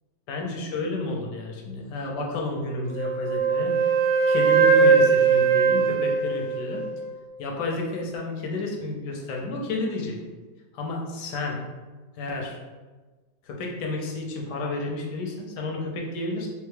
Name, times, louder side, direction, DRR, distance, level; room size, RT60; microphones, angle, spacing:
voice 1, 0.3-4.0 4.3-6.8 7.4-10.2 10.7-11.6 12.2-12.6 13.4-16.5, left 2 dB, 75° left, 0 dB, 1.1 m, -31 dB
Wind instrument woodwind instrument, 2.9-7.1, right 5 dB, 85° right, 1.3 m, -20 dB
3.3 x 2.2 x 3.2 m, 1.3 s
omnidirectional pair, 2.0 m